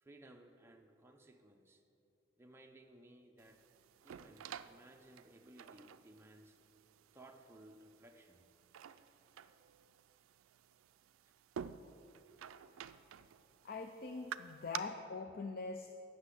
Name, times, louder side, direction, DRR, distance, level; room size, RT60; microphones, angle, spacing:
voice 1, 0.0-1.8 2.4-3.6 4.0-6.6 7.1-8.4 11.3-12.0, right 1 dB, 10° right, 3 dB, 0.6 m, -60 dB
sound 1, 3.4-14.8, right 8 dB, 85° right, 0.3 m, -51 dB
voice 2, 13.6-15.9, left 4 dB, 50° left, 6 dB, 0.4 m, -43 dB
8.0 x 6.4 x 8.2 m, 2.7 s
head